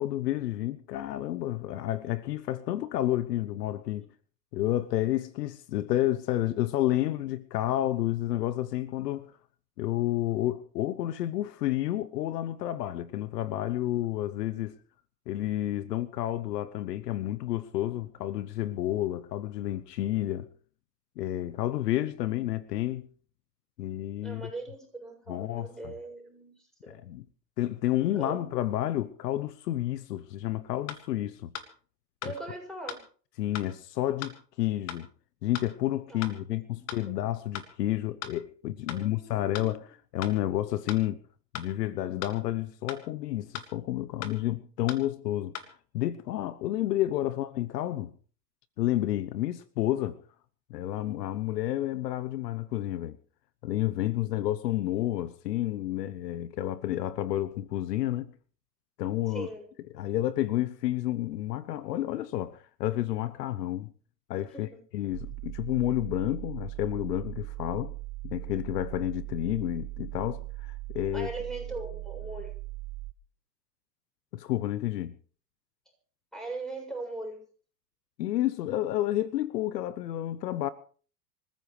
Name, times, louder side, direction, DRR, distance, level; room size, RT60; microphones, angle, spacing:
voice 1, 0.0-4.1 4.5-9.3 9.8-14.7 15.3-20.5 21.2-23.1 23.8-24.5 25.3-25.9 26.9-27.2 27.6-31.5 32.2-32.3 33.4-35.1 35.4-41.2 41.5-45.5 45.9-48.1 48.8-50.2 50.7-53.2 53.6-58.3 59.0-59.5 59.9-63.9 64.3-64.7 64.9-67.9 68.2-71.3 74.3-75.1 78.2-80.7, left 14 dB, 70° left, 1.0 m, -30 dB
voice 2, 24.2-27.0 28.2-28.4 32.2-33.0 36.1-36.3 36.7-37.2 38.9-39.7 59.3-59.7 64.5-64.8 71.1-72.5 76.3-77.5, right 2 dB, ahead, 7.4 m, -40 dB
sound 1, 30.9-31.0 31.5-31.7 32.2-32.4 32.9-33.0 33.6-33.7 34.2-34.4 34.9-35.0 35.5-35.7 36.2-36.4 36.9-37.0 37.6-37.7 38.2-38.4 38.9-39.0 39.5-39.7 40.2-40.4 40.9-41.0 41.6-41.7 42.2-42.4 42.9-43.0 43.5-43.7 44.2-44.4 44.9-45.0 45.6-45.7, left 8 dB, 30° left, 2.2 m, -38 dB
sound 2, 65.1-73.1, right 21 dB, 25° right, 0.7 m, -39 dB
26.0 x 14.5 x 3.3 m
hypercardioid pair, 110°, 50 cm